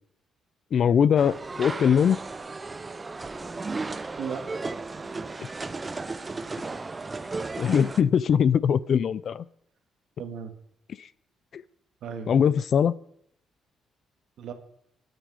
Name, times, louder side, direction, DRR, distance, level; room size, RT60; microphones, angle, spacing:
voice 1, 0.7-2.2 7.6-9.4 11.0-11.1 11.5-11.6 12.3-12.9, left 7 dB, 50° left, 19 dB, 0.5 m, -21 dB
sound 1, 1.2-8.0, right 3 dB, 20° right, 0.6 m, -35 dB
voice 2, 4.2-4.5 4.9-5.4 10.2-10.5 12.0-12.3 14.4-14.5, right 7 dB, 70° right, 7 dB, 2.0 m, -37 dB
21.5 x 9.1 x 4.9 m, 0.70 s
cardioid pair, 130°, 0 cm